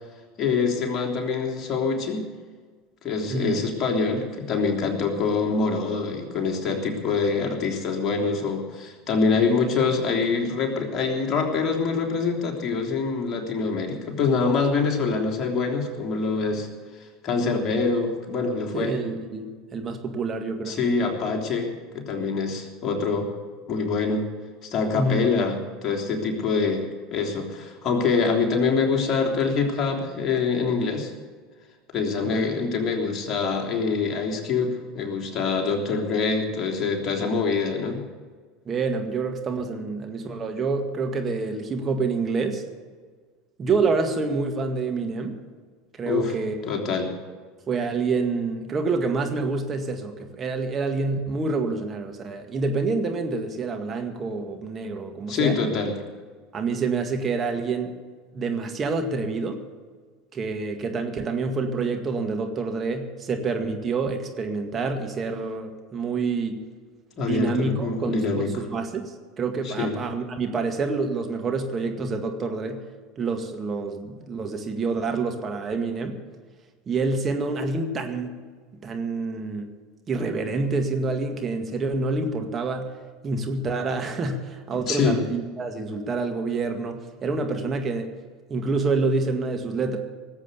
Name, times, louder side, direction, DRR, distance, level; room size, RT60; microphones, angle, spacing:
voice 1, 0.4-2.3 3.0-16.7 17.2-19.0 20.6-23.3 23.7-24.3 24.6-31.1 31.9-38.0 46.1-46.3 46.6-47.1 55.3-55.9 67.2-68.5 69.6-70.0 84.9-85.2, left 4 dB, 40° left, 0 dB, 3.3 m, -25 dB
voice 2, 18.7-20.8 24.9-25.3 32.2-32.5 38.7-42.6 43.6-45.4 46.0-46.6 47.7-55.6 56.5-57.9 58.3-59.6 60.3-66.6 67.2-72.8 73.2-76.2 76.9-78.3 78.8-79.7 80.1-82.9 83.2-88.1 88.5-90.0, right 4 dB, 30° right, 4 dB, 2.0 m, -27 dB
19.0 x 8.1 x 8.2 m, 1.5 s
hypercardioid pair, 80°, 0 cm